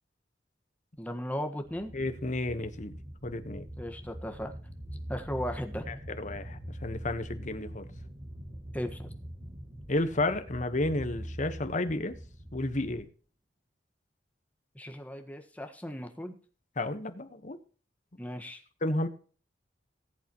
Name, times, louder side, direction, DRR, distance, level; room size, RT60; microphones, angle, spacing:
voice 1, 1.0-1.9 3.7-4.6 5.1-5.9 8.7-9.1 14.7-16.4 18.2-18.6, equal, 10° left, 5 dB, 1.5 m, -36 dB
sound 1, 1.6-13.0, equal, 30° right, 1.7 m, -43 dB
voice 2, 1.9-2.9 3.2-3.7 5.9-7.9 9.9-12.2 12.5-13.1 16.8-17.6 18.8-19.1, left 2 dB, 45° left, 9 dB, 1.2 m, -32 dB
19.0 x 8.4 x 3.1 m, 0.40 s
head